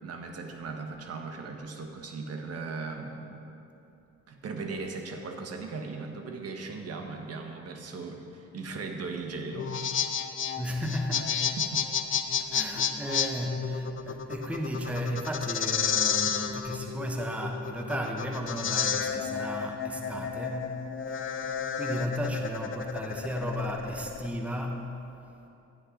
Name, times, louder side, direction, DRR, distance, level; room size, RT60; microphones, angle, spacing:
voice 1, 0.0-3.4 4.3-10.0 11.1-11.2 11.6-11.7, right 4 dB, 55° right, 3 dB, 1.3 m, -38 dB
sound 1, 9.5-24.3, left 7 dB, 40° left, 0.7 m, -31 dB
voice 2, 10.6-11.6 12.4-25.0, equal, 5° right, 2 dB, 0.9 m, -34 dB
13.0 x 9.8 x 3.8 m, 2.8 s
cardioid pair, 90°, 30 cm